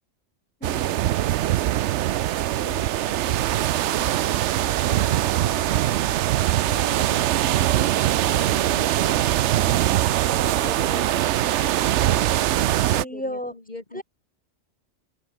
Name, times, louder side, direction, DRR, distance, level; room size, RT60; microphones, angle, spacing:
voice 1, 0.6-1.0 12.9-13.5 13.9-14.0, equal, 5° left, 5.3 m, -33 dB
sound 1, 0.6-13.0, right 13 dB, 75° right, 0.9 m, -22 dB
voice 2, 2.6-4.5 4.8-6.2 6.7-9.9 10.2-14.0, left 2 dB, 35° left, 2.8 m, -41 dB
omnidirectional pair, 1.2 m